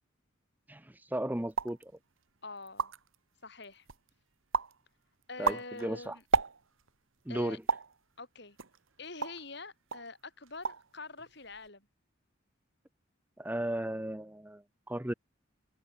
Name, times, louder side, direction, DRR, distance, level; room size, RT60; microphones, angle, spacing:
voice 1, 0.7-1.9 5.4-6.2 7.3-7.6 13.4-15.1, right 1 dB, 10° right, 0.8 m, -35 dB
sound 1, 1.5-1.8 2.4-2.5 2.6-3.2 3.6-4.1 4.5-4.8 5.2-6.9 7.7-8.0 8.6-9.5 9.9-10.1 10.4-10.9 11.2-11.7, right 4 dB, 85° right, 1.5 m, -32 dB
voice 2, 2.4-2.9 3.4-3.9 5.3-6.2 7.3-7.6 8.2-8.6 9.0-11.9, left 3 dB, 55° left, 6.5 m, -45 dB
head